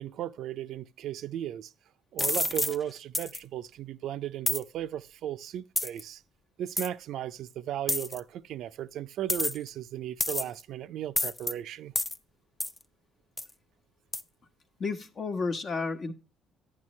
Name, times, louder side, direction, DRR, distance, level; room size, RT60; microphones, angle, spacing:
voice 1, 0.0-1.7 2.1-6.2 6.6-12.0, right 11 dB, 65° right, 0.4 m, -36 dB
sound 1, 2.2-2.8 3.1-3.4 4.5-4.6 5.8-6.0 6.8-6.9 7.9-8.2 9.3-9.7 10.2-10.6 11.2-11.5 12.0-12.2 12.6-12.8 13.4-13.5 14.1-14.2, left 2 dB, 20° left, 0.6 m, -29 dB
voice 2, 14.8-16.1, left 4 dB, 45° left, 1.2 m, -31 dB
11.0 x 8.9 x 3.2 m
supercardioid pair, 70°, 0 cm